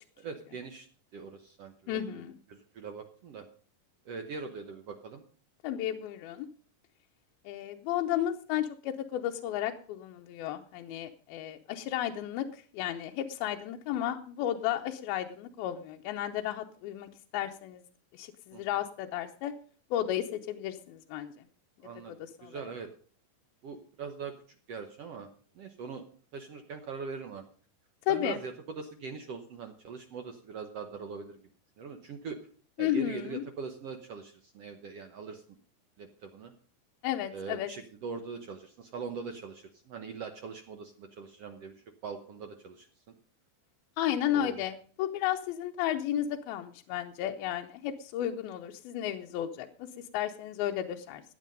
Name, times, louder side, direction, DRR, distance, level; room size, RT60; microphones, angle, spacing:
voice 1, 0.2-0.9 1.1-2.2 2.5-3.4 4.0-5.2 18.5-18.6 21.8-22.9 23.6-24.3 24.7-25.3 25.5-26.0 26.3-27.4 28.1-31.4 31.8-32.4 32.8-35.4 36.0-36.5 37.3-41.7 42.0-42.9 44.3-44.7, right 5 dB, 75° right, 6 dB, 1.4 m, -41 dB
voice 2, 1.9-2.4 5.6-6.5 7.5-17.8 18.1-19.5 19.9-21.3 22.2-22.6 28.1-28.4 32.8-33.4 37.0-37.7 44.0-51.2, left 11 dB, 85° left, 4 dB, 2.6 m, -33 dB
15.0 x 9.4 x 5.3 m, 0.43 s
omnidirectional pair, 4.2 m